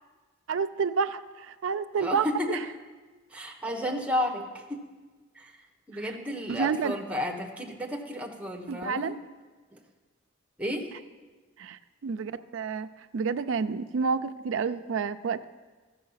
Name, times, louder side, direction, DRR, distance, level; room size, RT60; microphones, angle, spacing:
voice 1, 0.5-2.6 5.9-6.0 6.5-7.0 8.7-9.2 11.6-12.9 13.1-15.4, right 5 dB, 80° right, 10 dB, 0.4 m, -29 dB
voice 2, 2.0-2.6 3.3-4.8 5.3-5.6 5.9-9.2 9.7-9.8 10.6-10.9, left 1 dB, 5° right, 2 dB, 1.1 m, -32 dB
14.0 x 6.9 x 5.6 m, 1.3 s
head